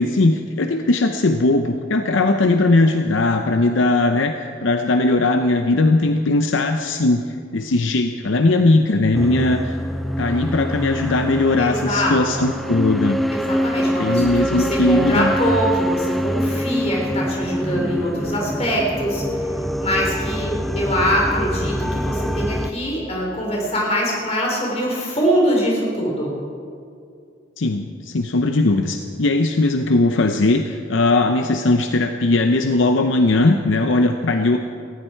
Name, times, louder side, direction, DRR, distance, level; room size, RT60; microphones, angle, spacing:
voice 1, 0.0-4.3 4.6-9.8 10.2-13.2 14.0-15.3 27.6-34.6, left 2 dB, 65° left, 6 dB, 0.7 m, -19 dB
sound 1, 9.1-22.7, equal, ahead, 0.4 m, -24 dB
voice 2, 11.6-12.1 13.3-19.5 19.8-26.3, equal, 30° left, -2 dB, 4.0 m, -23 dB
19.0 x 15.0 x 4.5 m, 2.4 s
head